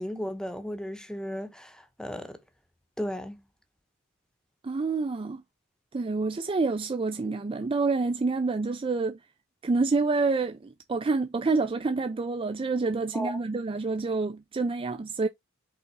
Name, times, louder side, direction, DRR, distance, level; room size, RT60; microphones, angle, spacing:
voice 1, 0.0-2.4 3.0-3.4 13.1-13.4, equal, 5° left, 0.9 m, -35 dB
voice 2, 4.6-5.4 5.9-9.2 9.6-15.3, right 3 dB, 25° right, 0.4 m, -28 dB
5.6 x 3.7 x 4.5 m
head